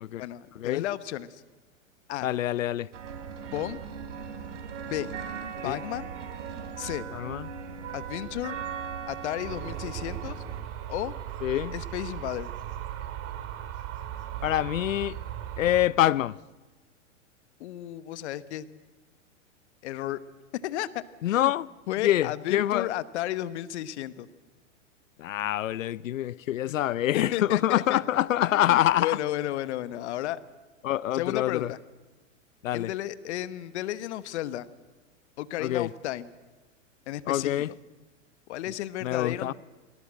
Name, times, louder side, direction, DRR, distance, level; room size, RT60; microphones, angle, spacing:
voice 1, 0.2-1.4 2.1-2.3 3.5-3.8 4.9-5.1 5.6-6.1 6.8-7.0 7.9-8.6 9.1-10.4 10.9-11.1 11.7-12.5 17.6-18.6 19.8-20.2 20.6-21.5 21.9-24.3 26.7-26.8 27.1-28.0 28.5-30.4 31.1-31.8 32.7-34.7 35.4-36.3 37.1-37.6 38.5-39.5, left 13 dB, 60° left, 1.1 m, -33 dB
voice 2, 2.2-2.9 5.7-5.8 7.1-7.5 11.4-11.7 14.4-15.1 15.6-16.3 21.2-21.7 22.0-22.9 25.2-29.1 30.8-31.7 32.6-32.9 35.6-35.9 37.3-37.7 39.0-39.5, left 13 dB, 85° left, 0.6 m, -26 dB
sound 1, 2.9-10.6, right 7 dB, 70° right, 3.1 m, -38 dB
sound 2, 9.4-15.9, right 11 dB, 40° right, 2.2 m, -37 dB
21.0 x 18.5 x 7.7 m
hypercardioid pair, 110°, 38 cm